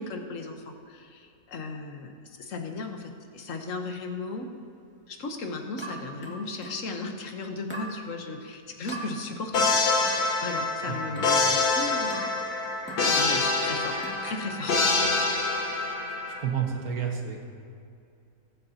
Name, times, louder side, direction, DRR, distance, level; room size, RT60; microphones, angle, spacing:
voice 1, 0.0-2.1 2.4-4.5 5.1-9.8 10.4-12.2 13.0-15.0, left 3 dB, 60° left, 4 dB, 1.3 m, -36 dB
sound 1, 5.8-6.9 7.7-8.0 8.9-9.1 10.0-10.3 11.2-11.4 12.1-12.4 12.9-13.1 14.0-14.3, right 1 dB, 5° left, 2.0 m, -39 dB
sound 2, 9.5-16.4, left 3 dB, 85° left, 1.8 m, -26 dB
voice 2, 16.4-17.4, right 7 dB, 70° right, 1 dB, 1.7 m, -31 dB
20.5 x 7.9 x 2.8 m, 2.5 s
omnidirectional pair, 1.6 m